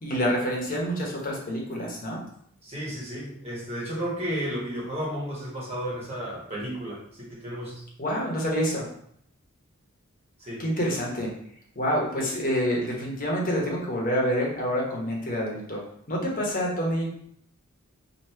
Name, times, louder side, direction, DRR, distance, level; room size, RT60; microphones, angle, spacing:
voice 1, 0.0-2.2 8.0-8.9 10.6-11.3 11.7-17.1, equal, 40° left, -2 dB, 1.1 m, -27 dB
voice 2, 2.6-7.8 10.4-10.6, equal, 30° right, -6 dB, 1.5 m, -33 dB
3.0 x 2.9 x 4.4 m, 0.66 s
head